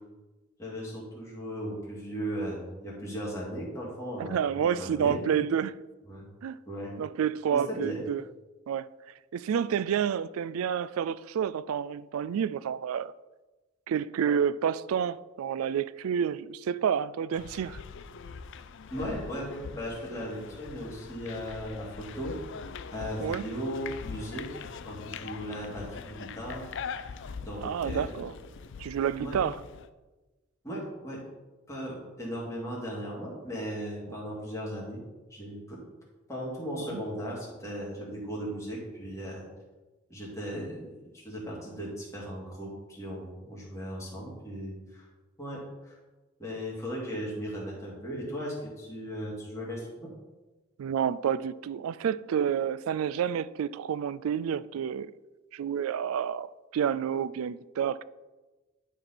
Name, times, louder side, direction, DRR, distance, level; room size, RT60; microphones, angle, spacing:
voice 1, 0.6-5.3 6.1-6.3 6.7-6.9 7.5-8.0 18.9-22.3 22.9-28.2 29.2-29.4 30.6-31.2 31.7-35.0 35.3-35.8 36.3-39.4 40.1-45.1 45.4-46.0 46.4-50.1, equal, 15° left, 2.3 m, -37 dB
voice 2, 4.2-5.8 6.4-6.6 7.0-8.2 8.7-8.9 9.3-13.1 13.9-17.8 23.2-23.4 27.6-28.3 28.8-29.6 34.1-34.2 36.8-37.0 50.8-55.1 55.5-58.0, right 8 dB, 85° right, 0.3 m, -29 dB
sound 1, 17.3-29.9, left 5 dB, 60° left, 0.4 m, -42 dB
11.0 x 4.3 x 4.3 m
head